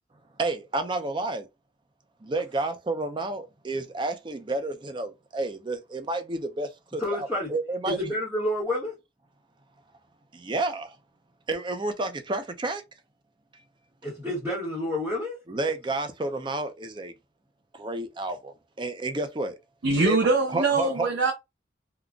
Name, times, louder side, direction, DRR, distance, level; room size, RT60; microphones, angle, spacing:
voice 1, 0.4-1.5 2.2-8.1 10.3-11.0 11.5-12.8 15.5-17.1 17.7-19.6 20.0-20.2 20.5-21.1, right 2 dB, 25° right, 0.5 m, -30 dB
voice 2, 7.0-7.5 7.9-8.9 14.0-15.4, left 1 dB, 10° right, 1.1 m, -29 dB
voice 3, 19.8-21.3, right 3 dB, 80° right, 0.7 m, -23 dB
3.7 x 2.2 x 2.3 m
head